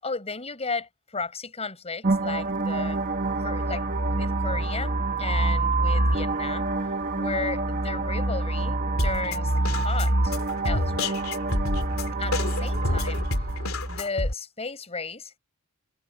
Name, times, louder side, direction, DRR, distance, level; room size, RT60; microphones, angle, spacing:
voice 1, 0.0-3.0 3.4-4.9 5.2-6.7 7.1-10.3 10.6-11.2 12.2-13.3 13.9-15.4, left 4 dB, 30° left, 5.2 m, -34 dB
sound 1, 2.0-14.0, right 2 dB, 40° right, 1.4 m, -26 dB
Drum kit, 9.0-14.3, left 2 dB, 75° left, 2.6 m, -29 dB
head